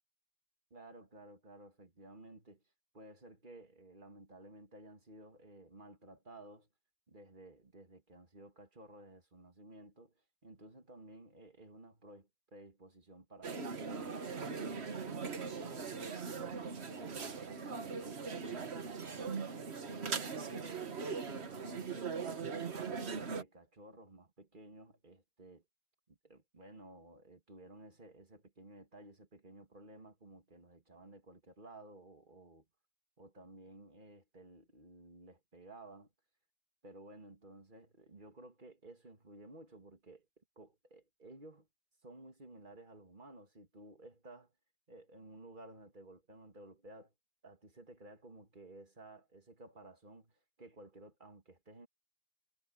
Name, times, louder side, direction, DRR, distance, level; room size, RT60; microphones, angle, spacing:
voice 1, 0.7-2.6 2.9-6.7 7.1-10.1 10.4-16.0 16.3-19.4 19.8-25.6 26.1-32.7 33.2-36.1 36.8-41.7 42.0-44.5 44.9-47.1 47.4-51.9, right 2 dB, 45° right, 2.4 m, -55 dB
sound 1, 13.4-23.4, right 5 dB, 70° right, 1.5 m, -40 dB
omnidirectional pair, 1.2 m